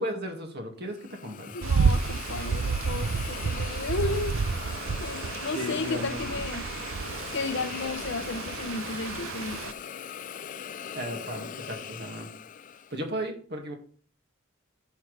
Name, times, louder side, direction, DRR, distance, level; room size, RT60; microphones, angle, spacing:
voice 1, 0.0-1.6 5.5-6.4 10.9-12.3 12.9-13.7, equal, 55° right, 2.1 m, -35 dB
Hiss, 0.9-13.0, left 8 dB, 40° left, 0.4 m, -40 dB
voice 2, 1.5-4.4 5.0-6.7 7.3-9.7, left 3 dB, 65° left, 0.7 m, -33 dB
sound 1, 1.6-9.7, right 5 dB, 70° right, 0.5 m, -30 dB
14.5 x 6.2 x 3.4 m
head